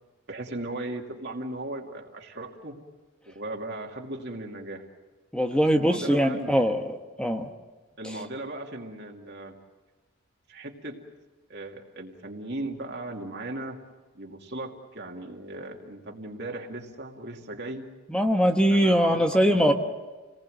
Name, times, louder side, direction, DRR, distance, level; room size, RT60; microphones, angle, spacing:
voice 1, 0.3-2.8 3.3-4.9 5.5-6.7 8.0-9.6 10.5-11.0 11.5-13.8 14.1-17.8 18.7-19.7, right 2 dB, 50° right, 1 dB, 2.5 m, -37 dB
voice 2, 5.3-7.5 18.1-19.7, equal, 5° left, 5 dB, 1.2 m, -22 dB
28.5 x 19.5 x 7.8 m, 1.3 s
head